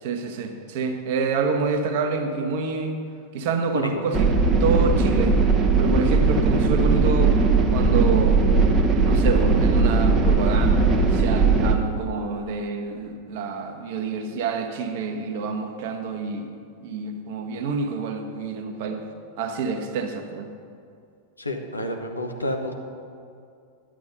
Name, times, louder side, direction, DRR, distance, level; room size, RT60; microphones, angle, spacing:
voice 1, 0.0-3.0 3.3-4.3 4.6-5.4 5.8-7.4 7.7-8.5 9.0-16.5 16.8-19.0 19.4-20.5, right 4 dB, 50° right, 5 dB, 1.2 m, -27 dB
sound 1, 4.1-11.7, right 4 dB, 25° right, 1.0 m, -19 dB
voice 2, 21.4-22.8, left 1 dB, 80° left, 4 dB, 1.1 m, -29 dB
11.5 x 8.4 x 5.4 m, 2.4 s
figure-of-eight pair, 90°, 0 cm